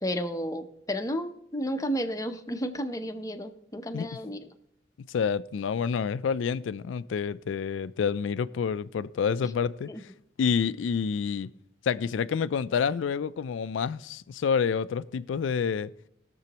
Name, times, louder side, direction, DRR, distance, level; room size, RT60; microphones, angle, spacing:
voice 1, 0.0-4.4 9.9-10.0, equal, 20° left, 0.7 m, -32 dB
voice 2, 5.1-10.1 10.4-11.5 11.8-15.9, left 6 dB, 80° left, 0.3 m, -28 dB
20.5 x 6.9 x 2.9 m
head